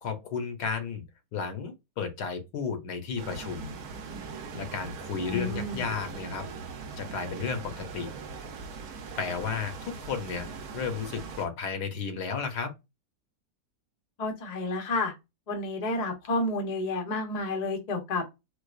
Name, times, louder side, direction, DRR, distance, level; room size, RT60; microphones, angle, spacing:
voice 1, 0.0-1.0 1.3-3.8 4.5-6.4 7.0-8.1 9.2-12.7, left 5 dB, 75° left, 1.3 m, -33 dB
sound 1, 3.2-11.5, right 5 dB, 65° right, 1.1 m, -40 dB
voice 2, 5.2-5.8 14.2-15.1 15.5-18.2, left 2 dB, 40° left, 0.6 m, -30 dB
4.7 x 2.2 x 2.3 m
omnidirectional pair, 1.9 m